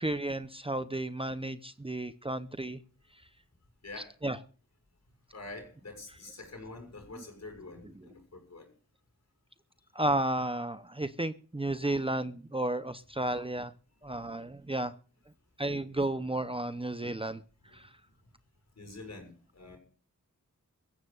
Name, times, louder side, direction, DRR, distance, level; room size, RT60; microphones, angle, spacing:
voice 1, 0.0-2.8 3.1-3.2 4.2-4.4 7.1-7.2 8.0-8.1 9.9-13.7 14.0-14.9 15.6-17.4 17.7-18.0, right 1 dB, 15° right, 11 dB, 0.8 m, -33 dB
voice 2, 3.8-4.1 5.3-8.7 11.9-12.0 13.3-13.4 17.7-17.8 18.8-19.8, left 2 dB, 60° left, 4 dB, 6.5 m, -46 dB
24.0 x 14.5 x 2.5 m, 0.39 s
wide cardioid pair, 75°, 31 cm